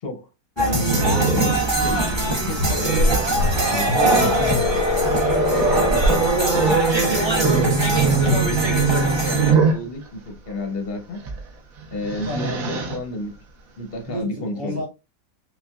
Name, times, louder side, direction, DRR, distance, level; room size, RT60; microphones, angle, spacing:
voice 1, 0.6-3.2 3.7-4.3 5.5-11.2 11.9-13.3 13.8-14.8, left 1 dB, 45° left, 0.8 m, -31 dB
sound 1, 0.6-9.5, right 1 dB, 30° right, 0.5 m, -24 dB
Growling, 0.8-9.9 11.2-11.4 11.8-13.0, right 4 dB, 60° right, 1.1 m, -22 dB
sound 2, 3.9-6.0, left 10 dB, 70° left, 1.0 m, -24 dB
voice 2, 3.9-4.8 12.3-12.7 14.1-14.9, left 1 dB, 75° right, 2.8 m, -30 dB
5.6 x 2.3 x 2.3 m
omnidirectional pair, 1.9 m